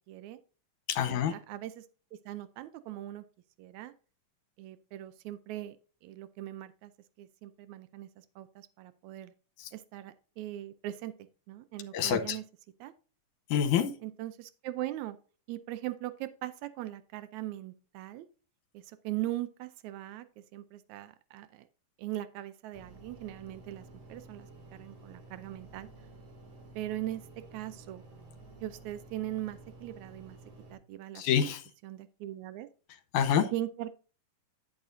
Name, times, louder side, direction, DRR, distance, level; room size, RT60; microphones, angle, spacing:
voice 1, 0.1-0.4 1.1-1.9 2.3-3.2 3.6-3.9 4.6-5.8 6.0-6.9 7.2-9.3 9.7-11.1 11.5-12.4 12.8-12.9 14.0-15.2 15.5-18.3 18.7-21.7 22.0-25.9 26.8-27.2 27.5-28.0 28.6-30.4 30.7-31.2 31.8-32.7 33.5-33.9, right 14 dB, 90° right, 13 dB, 1.6 m, -40 dB
voice 2, 0.9-1.3 9.6-9.7 11.9-12.4 13.5-13.9 31.2-31.6 33.1-33.5, left 8 dB, 70° left, 7 dB, 2.2 m, -27 dB
sound 1, 22.7-30.7, right 2 dB, 65° right, 3.8 m, -52 dB
10.5 x 9.2 x 2.6 m, 0.37 s
omnidirectional pair, 4.0 m